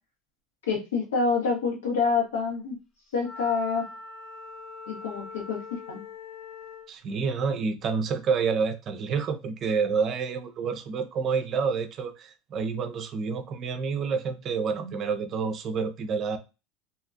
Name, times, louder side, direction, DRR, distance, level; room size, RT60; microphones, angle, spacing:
voice 1, 0.7-2.8 3.1-3.9 4.9-6.0, left 4 dB, 90° left, 1.2 m, -27 dB
Wind instrument woodwind instrument, 3.2-6.9, left 4 dB, 45° left, 1.0 m, -42 dB
voice 2, 6.9-16.4, right 5 dB, 45° right, 0.5 m, -28 dB
2.7 x 2.4 x 2.5 m
hypercardioid pair, 85°, 0 cm